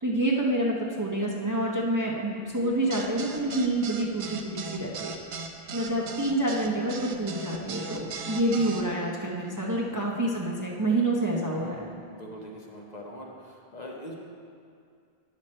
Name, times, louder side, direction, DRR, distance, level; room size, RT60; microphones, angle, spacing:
voice 1, 0.0-5.1 5.7-11.9, right 1 dB, 20° right, -3 dB, 0.7 m, -27 dB
sound 1, 2.9-8.8, right 4 dB, 80° right, 0.9 m, -38 dB
voice 2, 11.5-14.1, equal, 45° left, -1 dB, 0.9 m, -43 dB
9.2 x 6.4 x 4.3 m, 2.4 s
omnidirectional pair, 1.0 m